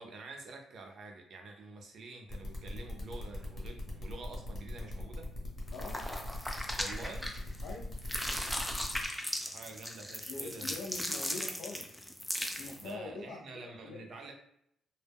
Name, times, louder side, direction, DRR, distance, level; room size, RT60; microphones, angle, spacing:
voice 1, 0.0-5.3 6.8-7.4 9.4-10.7 12.8-14.3, right 3 dB, 60° right, 3 dB, 0.5 m, -47 dB
sound 1, 2.3-9.1, left 1 dB, 40° left, 1.0 m, -42 dB
sound 2, 5.7-7.7 8.0-12.9, equal, 5° left, 0.4 m, -37 dB
voice 2, 10.3-12.0 12.6-13.6 13.8-14.0, left 3 dB, 90° left, -6 dB, 0.5 m, -43 dB
2.1 x 2.0 x 3.4 m, 0.71 s
cardioid pair, 90°, 0 cm